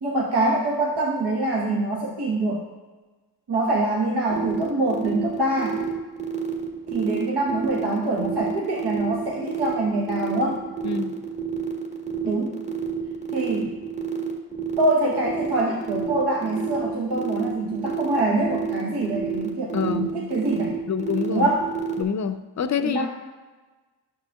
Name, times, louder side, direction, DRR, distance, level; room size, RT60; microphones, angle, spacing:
voice 1, 0.0-2.7 3.5-5.8 6.9-10.6 12.2-12.5 13.3-13.8 14.8-20.8 21.3-21.7 22.8-23.1, right 2 dB, 70° right, -3 dB, 1.1 m, -24 dB
sound 1, 4.3-22.0, right 10 dB, 15° right, 1.1 m, -30 dB
voice 2, 10.8-11.2 19.7-20.1 20.9-21.5 22.0-23.1, left 7 dB, 45° left, 11 dB, 0.5 m, -26 dB
8.8 x 6.6 x 2.3 m, 1.2 s
cardioid pair, 50°, 41 cm